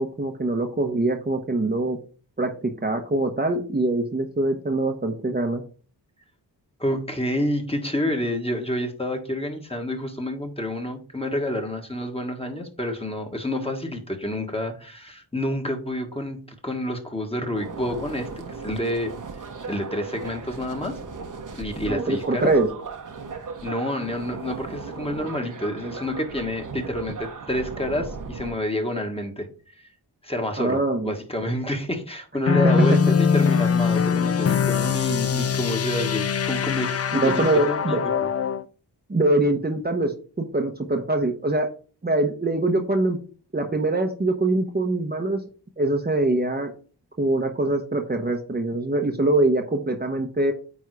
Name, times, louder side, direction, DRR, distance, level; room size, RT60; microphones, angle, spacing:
voice 1, 0.0-2.0 2.4-5.6 21.8-22.7 30.6-31.1 32.6-33.0 37.1-38.0 39.1-41.7 42.0-43.2 43.5-45.4 45.8-46.7 47.2-50.5, right 2 dB, 25° right, 2 dB, 1.0 m, -23 dB
voice 2, 6.8-19.1 19.7-21.0 21.5-22.5 23.6-29.5 29.8-29.9 30.2-38.1, left 1 dB, 15° left, 3 dB, 1.6 m, -28 dB
sound 1, 17.5-28.5, right 5 dB, 45° right, 1.2 m, -37 dB
sound 2, 32.5-38.6, left 6 dB, 35° left, 0.5 m, -22 dB
9.4 x 3.6 x 4.8 m, 0.39 s
wide cardioid pair, 100°, 42 cm